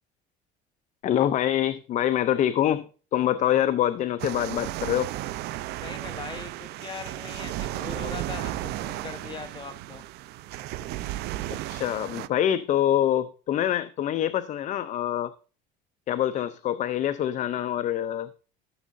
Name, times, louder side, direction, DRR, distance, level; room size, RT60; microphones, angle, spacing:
voice 1, 1.0-5.1 11.7-15.3 16.1-18.3, left 11 dB, 45° left, 13 dB, 0.6 m, -25 dB
sound 1, 4.2-12.3, right 15 dB, 70° right, 0.6 m, -34 dB
voice 2, 5.8-10.0, left 6 dB, 25° left, 7 dB, 1.2 m, -40 dB
14.0 x 7.3 x 2.6 m, 0.36 s
cardioid pair, 125°, 18 cm